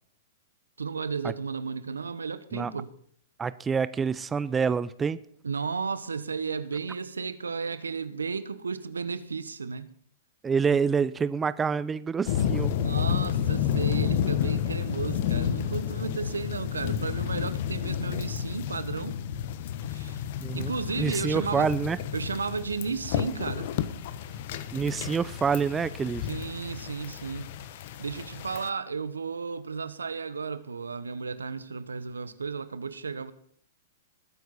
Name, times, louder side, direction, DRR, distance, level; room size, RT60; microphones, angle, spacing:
voice 1, 0.8-2.9 5.4-9.9 12.7-19.2 19.9-20.2 20.5-21.7 22.1-23.7 26.3-27.5 28.0-33.3, right 5 dB, 85° right, 0.9 m, -33 dB
voice 2, 3.4-5.2 10.4-12.7 20.4-20.7 21.0-22.0 24.7-26.3, right 6 dB, 15° right, 0.5 m, -27 dB
sound 1, 12.3-28.7, left 9 dB, 55° left, 1.0 m, -31 dB
20.5 x 9.3 x 4.1 m
hypercardioid pair, 105°, 0 cm